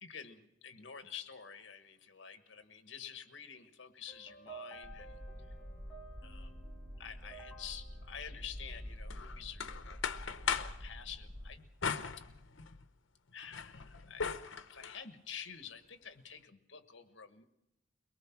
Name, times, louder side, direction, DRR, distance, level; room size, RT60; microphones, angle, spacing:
voice 1, 0.0-5.5 6.2-6.6 7.0-9.8 10.5-11.7 12.2-12.3 13.3-14.3 14.7-17.4, left 8 dB, 65° left, 9 dB, 1.4 m, -49 dB
sound 1, 4.1-9.4, right 3 dB, 15° left, 2.3 m, -54 dB
sound 2, 4.8-11.5, equal, 45° right, 7.0 m, -47 dB
sound 3, 9.1-10.8 11.8-12.9 13.3-15.0, left 6 dB, 80° left, 0.9 m, -39 dB
22.5 x 19.5 x 5.9 m, 0.87 s
head